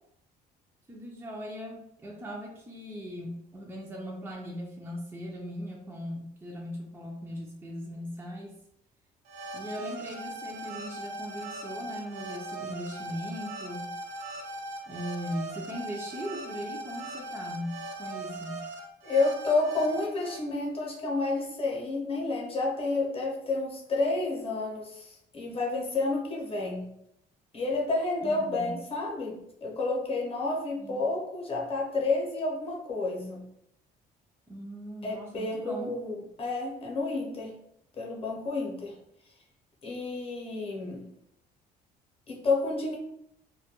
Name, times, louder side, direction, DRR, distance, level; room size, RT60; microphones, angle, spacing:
voice 1, 0.9-8.5 9.5-13.9 14.9-18.7 28.2-28.7 30.8-31.0 34.5-35.9, equal, 10° right, -2 dB, 0.4 m, -39 dB
sound 1, 9.3-20.4, right 2 dB, 90° right, 0.5 m, -40 dB
voice 2, 19.0-26.9 27.5-33.5 35.0-37.6 37.9-39.0 39.8-41.1 42.3-43.0, left 3 dB, 35° left, -1 dB, 0.7 m, -30 dB
2.2 x 2.2 x 2.8 m, 0.76 s
cardioid pair, 110°, 17 cm